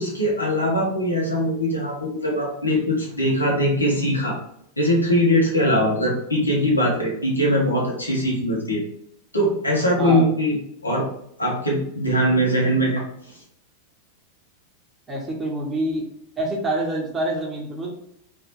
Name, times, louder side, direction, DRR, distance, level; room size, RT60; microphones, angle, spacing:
voice 1, 0.0-4.4 4.8-8.8 9.3-10.6 10.8-11.1 11.4-13.0, equal, 80° left, -2 dB, 1.2 m, -21 dB
voice 2, 10.0-10.3 15.1-16.1 16.4-17.9, right 1 dB, 15° right, -2 dB, 1.1 m, -26 dB
3.6 x 2.8 x 3.1 m, 0.72 s
figure-of-eight pair, 90°, 0 cm